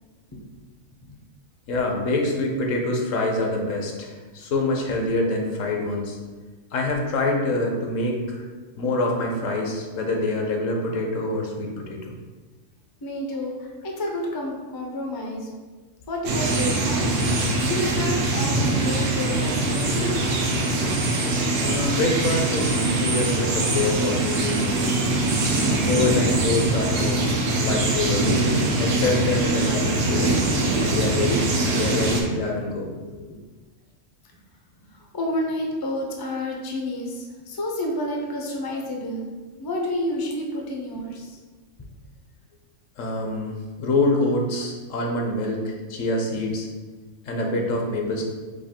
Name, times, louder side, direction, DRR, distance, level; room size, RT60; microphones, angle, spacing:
voice 1, 1.7-6.2 6.7-8.5 8.8-12.1 21.6-25.0 25.6-27.3 27.6-28.3 28.7-30.3 30.8-33.2 43.0-46.7 47.3-48.2, left 2 dB, 80° left, 1 dB, 1.1 m, -26 dB
voice 2, 13.0-15.5 16.1-20.2 29.5-31.2 31.7-32.1 35.1-41.4, left 1 dB, 30° left, 0 dB, 0.4 m, -30 dB
sound 1, 16.2-32.2, right 2 dB, 80° right, 1.1 m, -23 dB
5.0 x 2.4 x 4.2 m, 1.3 s
omnidirectional pair, 1.3 m